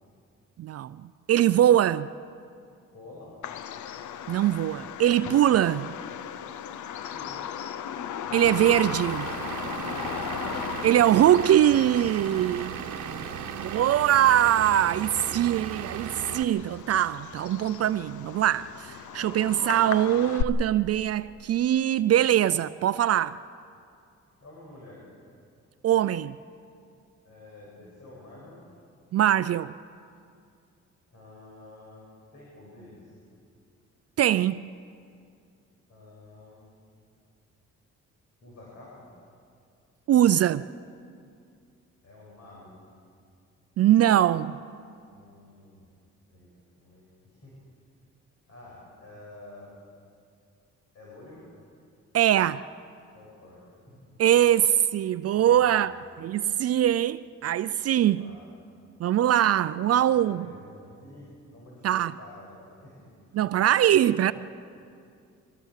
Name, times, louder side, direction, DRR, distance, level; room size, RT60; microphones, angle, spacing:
voice 1, 0.6-1.0 1.3-2.1 4.3-5.9 8.3-9.3 10.8-12.7 13.7-23.4 25.8-26.4 29.1-29.7 34.2-34.6 40.1-40.6 43.8-44.6 52.1-52.6 54.2-58.2 59.0-60.5 61.8-62.1 63.3-64.3, right 11 dB, 55° right, 0.5 m, -22 dB
voice 2, 2.9-3.4 7.1-7.5 9.7-10.6 12.4-13.6 24.4-25.0 27.2-28.6 31.1-32.0 32.3-33.2 35.9-36.6 38.4-39.1 42.0-42.7 45.1-45.9 46.3-47.5 48.5-49.7 50.9-51.5 53.1-54.2 55.3-55.9 57.9-58.4 59.8-63.4 64.1-64.3, left 2 dB, 55° left, 7.3 m, -49 dB
Bird vocalization bird call bird song, 3.4-20.4, left 9 dB, 75° left, 0.8 m, -37 dB
Vehicle / Engine, 8.4-16.4, right 10 dB, 70° right, 1.1 m, -36 dB
24.5 x 19.5 x 6.5 m
cardioid pair, 90°, 30 cm